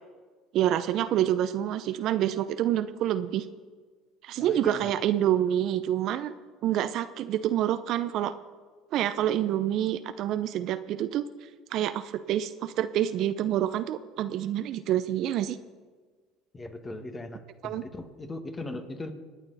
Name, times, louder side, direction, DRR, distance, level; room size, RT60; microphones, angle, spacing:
voice 1, 0.5-3.5 4.2-6.3 6.6-8.3 8.9-11.2 11.7-15.6 17.6-17.8, right 11 dB, 60° right, 12 dB, 0.7 m, -27 dB
voice 2, 4.4-4.9 16.5-19.1, left 2 dB, 25° left, 6 dB, 2.0 m, -39 dB
27.0 x 9.2 x 4.2 m, 1.5 s
hypercardioid pair, 75°, 0 cm